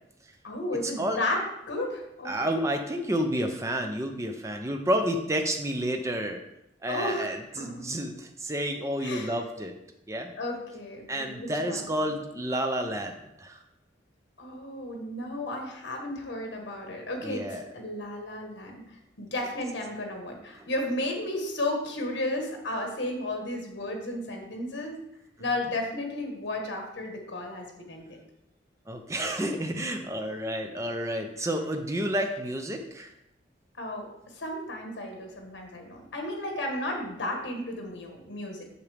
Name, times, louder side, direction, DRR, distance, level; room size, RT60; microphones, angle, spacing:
voice 1, 0.4-2.6 6.9-7.8 9.0-9.3 10.4-11.9 14.4-25.0 25.4-28.2 33.8-34.1 34.3-38.6, left 1 dB, 75° left, 2 dB, 1.4 m, -33 dB
voice 2, 2.2-6.4 6.8-9.7 10.1-10.3 11.1-13.6 17.2-17.7 28.9-33.1, right 1 dB, 15° right, 4 dB, 0.6 m, -30 dB
6.9 x 6.1 x 3.4 m, 0.84 s
head